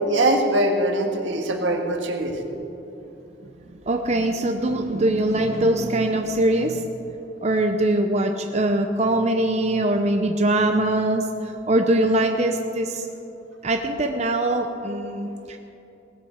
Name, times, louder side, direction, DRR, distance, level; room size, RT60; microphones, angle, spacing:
voice 1, 0.1-2.3, right 1 dB, 85° right, 2 dB, 1.6 m, -22 dB
voice 2, 3.9-6.8 7.4-11.2 11.7-13.0 13.6-15.6, right 1 dB, 35° right, 5 dB, 0.7 m, -22 dB
18.5 x 7.8 x 6.4 m, 2.9 s
head